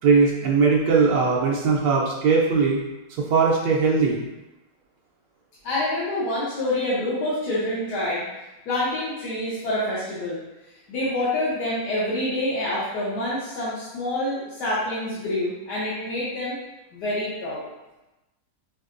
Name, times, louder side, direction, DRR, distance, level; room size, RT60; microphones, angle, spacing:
voice 1, 0.0-2.8 3.2-4.2, right 4 dB, 80° right, -3 dB, 1.3 m, -20 dB
voice 2, 5.6-8.2 8.7-10.4 10.9-16.6 16.9-17.6, left 1 dB, 70° left, -9 dB, 1.4 m, -27 dB
5.3 x 2.7 x 2.5 m, 0.99 s
omnidirectional pair, 1.9 m